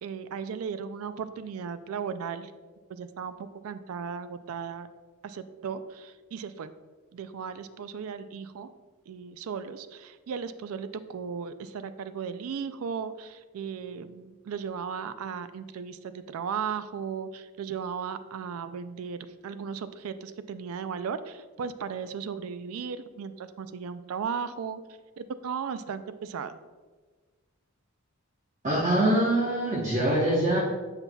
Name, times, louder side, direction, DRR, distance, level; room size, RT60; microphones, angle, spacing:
voice 1, 0.0-2.5 2.9-3.3 3.6-4.9 5.2-6.7 7.1-8.7 9.1-24.8 25.2-26.5, right 6 dB, 65° right, 12 dB, 0.3 m, -36 dB
voice 2, 28.6-30.6, right 1 dB, 35° right, -5 dB, 0.9 m, -24 dB
8.0 x 5.5 x 2.2 m, 1.4 s
head